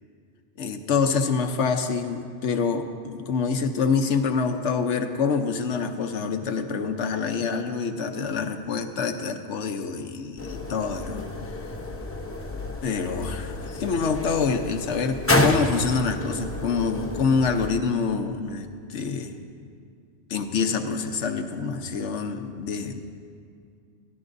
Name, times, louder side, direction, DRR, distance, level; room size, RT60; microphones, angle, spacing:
voice 1, 0.6-11.3 12.8-19.3 20.3-23.0, left 5 dB, 75° left, 6 dB, 1.1 m, -26 dB
sound 1, 10.4-17.7, left 2 dB, 15° left, 0.5 m, -29 dB
22.0 x 14.0 x 2.6 m, 2.2 s
omnidirectional pair, 1.2 m